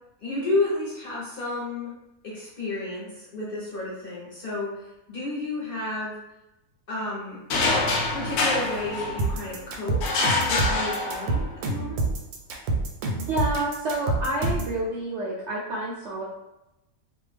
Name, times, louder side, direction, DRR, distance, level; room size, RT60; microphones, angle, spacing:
voice 1, 0.2-1.9 2.2-6.2 6.9-7.4 8.1-10.0 10.5-12.0, left 2 dB, 45° left, -7 dB, 0.8 m, -31 dB
sound 1, 7.5-9.5 10.0-11.6, left 3 dB, 85° left, 1.1 m, -25 dB
sound 2, 9.2-14.8, right 3 dB, 80° right, 1.1 m, -27 dB
voice 2, 13.3-16.2, right 1 dB, 65° right, -4 dB, 0.7 m, -28 dB
2.6 x 2.2 x 3.3 m, 0.94 s
omnidirectional pair, 1.6 m